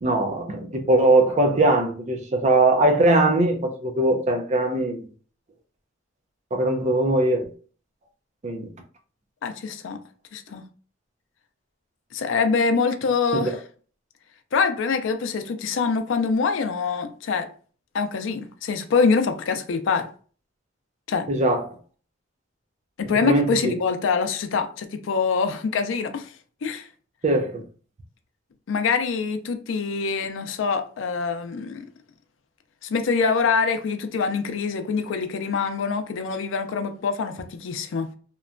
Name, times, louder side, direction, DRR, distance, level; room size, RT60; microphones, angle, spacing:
voice 1, 0.0-5.0 6.5-7.5 8.4-8.7 13.3-13.5 21.3-21.7 23.2-23.8 27.2-27.6, right 2 dB, 40° right, 0.5 m, -21 dB
voice 2, 9.4-10.0 10.3-10.7 12.1-13.5 14.5-17.5 17.9-20.1 21.1-21.3 23.0-26.3 26.6-26.9 28.7-31.8 32.9-38.1, left 5 dB, 80° left, 0.4 m, -24 dB
2.9 x 2.1 x 2.5 m
head